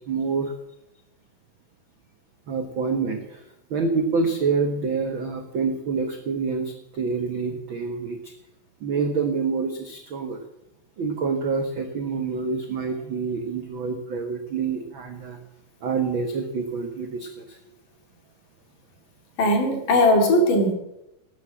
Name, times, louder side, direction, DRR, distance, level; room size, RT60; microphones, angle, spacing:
voice 1, 0.1-0.5 2.5-3.4 3.7-8.3 8.8-10.4 11.0-15.4 15.8-17.6, right 4 dB, 75° right, 5 dB, 1.1 m, -27 dB
voice 2, 19.4-20.7, left 1 dB, 65° left, 3 dB, 4.0 m, -19 dB
13.0 x 9.1 x 8.7 m, 0.89 s
omnidirectional pair, 4.1 m